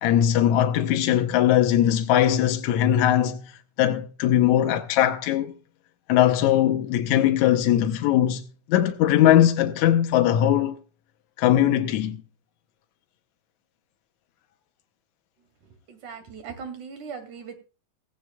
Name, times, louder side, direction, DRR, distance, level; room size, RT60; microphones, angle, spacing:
voice 1, 0.0-3.4 3.8-5.5 6.1-8.4 8.7-10.8 11.4-12.2, left 11 dB, 70° left, 1.9 m, -20 dB
voice 2, 15.9-17.6, right 6 dB, 65° right, 3.6 m, -39 dB
16.5 x 16.0 x 2.3 m
omnidirectional pair, 3.9 m